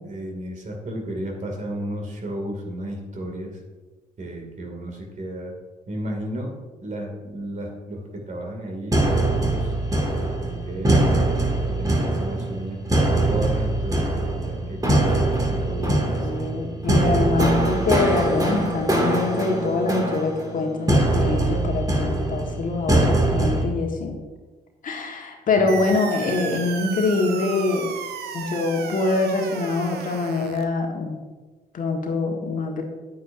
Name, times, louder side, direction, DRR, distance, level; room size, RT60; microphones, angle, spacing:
voice 1, 0.0-3.6 4.2-5.5 5.9-6.5 6.8-11.2 11.7-12.8 13.3-16.5 25.6-26.0, right 1 dB, 40° right, 1 dB, 2.5 m, -33 dB
sound 1, 8.9-23.6, right 2 dB, 20° right, 2.4 m, -22 dB
voice 2, 16.2-24.2 24.8-27.9 28.3-31.2 31.7-32.8, left 3 dB, 45° left, 1 dB, 1.6 m, -24 dB
sound 2, 25.7-30.7, right 7 dB, 60° right, 0.9 m, -34 dB
9.7 x 9.2 x 2.7 m, 1.3 s
figure-of-eight pair, 45°, 19 cm